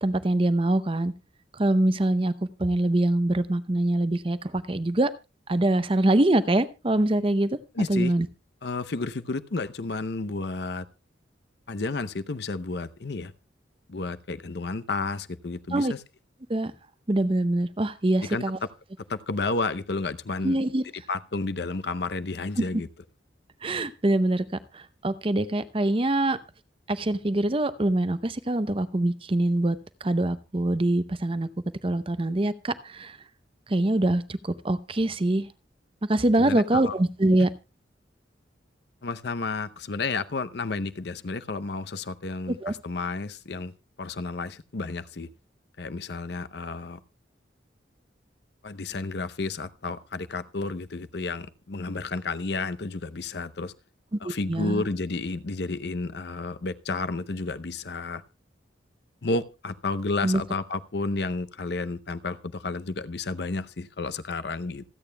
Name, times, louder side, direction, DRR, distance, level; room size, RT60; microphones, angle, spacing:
voice 1, 0.0-1.1 1.6-2.3 2.6-5.1 5.5-7.6 7.9-8.3 15.7-15.9 16.5-16.7 17.1-18.6 20.4-20.8 23.6-24.4 24.7-26.4 26.9-31.5 31.8-33.2 33.7-35.5 36.1-37.5 42.6-42.7 54.2-54.8 60.2-60.4, right 1 dB, 30° right, 14 dB, 0.6 m, -24 dB
voice 2, 7.7-8.1 8.6-10.9 11.7-13.3 13.9-16.0 18.2-18.4 19.1-20.6 21.1-22.9 36.4-37.0 39.0-43.7 44.0-45.3 45.8-47.0 48.6-53.7 54.2-58.2 59.2-64.8, left 3 dB, 60° left, 13 dB, 0.7 m, -31 dB
26.5 x 8.8 x 2.2 m, 0.28 s
head